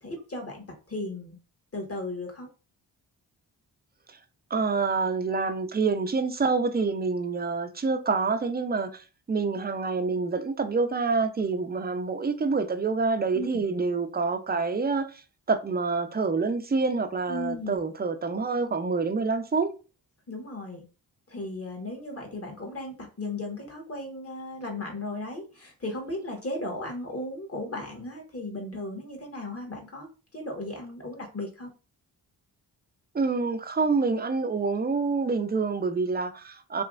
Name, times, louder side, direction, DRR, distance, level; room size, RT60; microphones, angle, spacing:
voice 1, 0.0-1.4 1.7-2.5 13.3-13.6 17.3-17.8 20.3-20.8 21.3-30.1 30.3-31.7, left 2 dB, 35° left, 1.5 m, -36 dB
voice 2, 4.5-15.2 15.5-19.7 33.1-36.8, right 4 dB, 25° right, 0.6 m, -27 dB
3.3 x 3.0 x 2.5 m
supercardioid pair, 50°, 42 cm